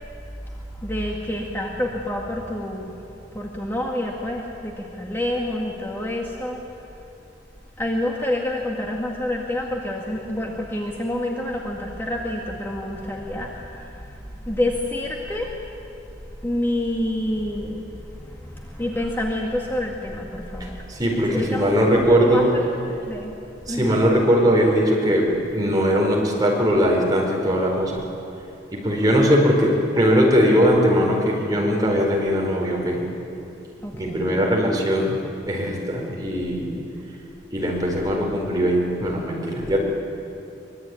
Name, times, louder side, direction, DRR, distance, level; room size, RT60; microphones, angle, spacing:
voice 1, 0.5-2.9 3.3-6.6 7.8-15.5 16.4-20.8 21.3-23.3 23.7-24.0 33.8-34.4, left 1 dB, 15° left, -2 dB, 1.9 m, -28 dB
voice 2, 20.6-22.5 23.7-28.0 28.7-33.0 33.9-35.2 35.4-36.7 37.5-39.8, equal, 20° right, -1 dB, 4.6 m, -20 dB
24.0 x 22.5 x 9.6 m, 2.8 s
head